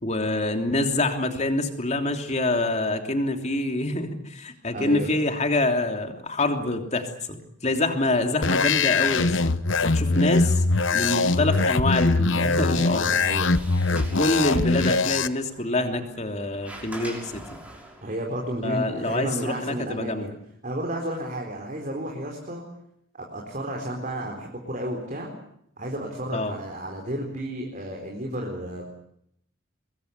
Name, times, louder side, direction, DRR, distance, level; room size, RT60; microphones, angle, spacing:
voice 1, 0.0-9.4 9.8-10.6 10.9-13.1 13.9-17.4 18.6-20.3 26.3-26.5, left 2 dB, 35° left, 5 dB, 3.1 m, -26 dB
voice 2, 4.7-5.1 13.1-13.5 18.0-20.3 20.6-22.6 23.1-25.3 25.8-28.9, right 1 dB, 40° right, 1 dB, 4.3 m, -32 dB
sound 1, 8.4-15.3, left 3 dB, 60° left, 1.1 m, -22 dB
Sliding door, 12.6-18.1, right 1 dB, 5° right, 6.2 m, -44 dB
24.5 x 22.0 x 8.3 m, 0.73 s
head